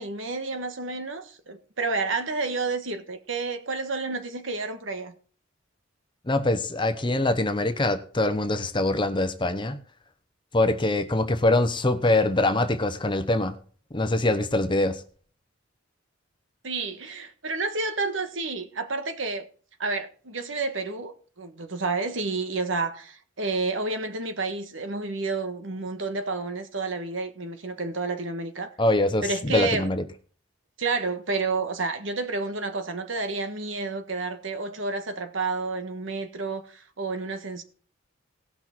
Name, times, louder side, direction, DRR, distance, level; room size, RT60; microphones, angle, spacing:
voice 1, 0.0-5.1 16.6-19.5 19.8-28.7 29.2-29.9 30.8-37.6, right 3 dB, 75° right, 1.4 m, -30 dB
voice 2, 6.3-9.8 10.5-13.6 13.9-15.0 28.8-30.0, left 2 dB, 25° left, 0.9 m, -23 dB
18.0 x 6.2 x 4.4 m
head